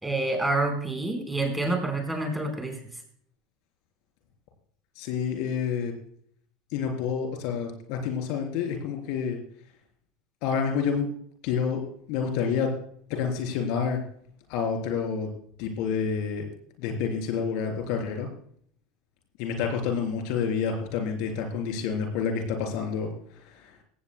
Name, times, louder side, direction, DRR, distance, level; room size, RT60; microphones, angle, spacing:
voice 1, 0.0-2.8, right 2 dB, 5° right, 3 dB, 4.5 m, -27 dB
voice 2, 5.0-5.9 6.7-9.4 10.4-11.1 11.4-11.8 12.1-12.7 13.1-14.0 14.5-15.3 15.6-16.4 16.8-18.3 19.4-23.1, left 6 dB, 65° left, 4 dB, 3.8 m, -28 dB
17.5 x 15.5 x 2.3 m, 0.62 s
hypercardioid pair, 95°, 0 cm